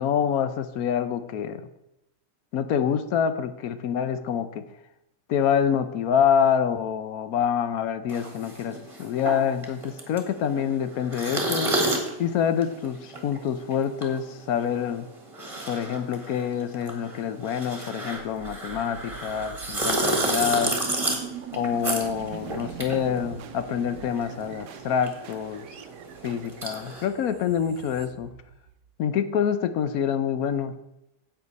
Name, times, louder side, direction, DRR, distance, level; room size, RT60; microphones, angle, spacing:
voice 1, 0.0-1.6 2.5-4.6 5.3-11.7 12.2-15.1 15.7-20.7 21.5-25.7 26.2-28.3 29.0-30.7, left 8 dB, 65° left, 11 dB, 1.0 m, -26 dB
sound 1, 8.1-23.9 24.1-27.0, right 1 dB, 20° right, 1.5 m, -31 dB
sound 2, 18.4-29.2, right 9 dB, 75° right, 1.2 m, -42 dB
10.0 x 7.9 x 4.1 m, 0.88 s
omnidirectional pair, 1.8 m